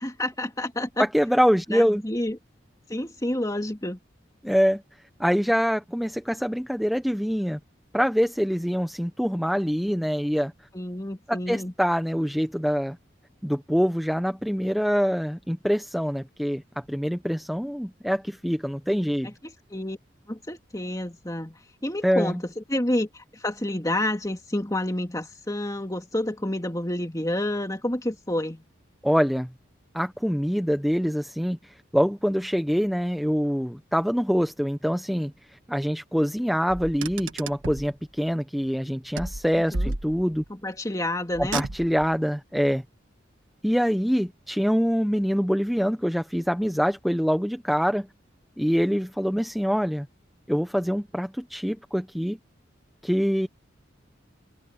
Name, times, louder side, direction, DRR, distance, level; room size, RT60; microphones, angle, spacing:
voice 1, 0.0-1.0 1.7-2.4 2.9-4.0 10.7-11.7 19.7-20.0 20.3-28.6 39.7-39.9 40.5-41.6, left 1 dB, 15° left, 2.5 m, -29 dB
voice 2, 1.0-2.0 4.4-4.8 5.2-7.6 7.9-10.5 11.3-13.0 13.4-19.3 22.0-22.4 29.0-29.5 29.9-40.4 41.4-42.8 43.6-48.1 48.6-50.1 50.5-52.4 53.0-53.5, equal, ahead, 0.6 m, -25 dB
Car, 36.7-37.9 39.2-40.5 41.3-42.2, right 2 dB, 90° right, 1.4 m, -33 dB
head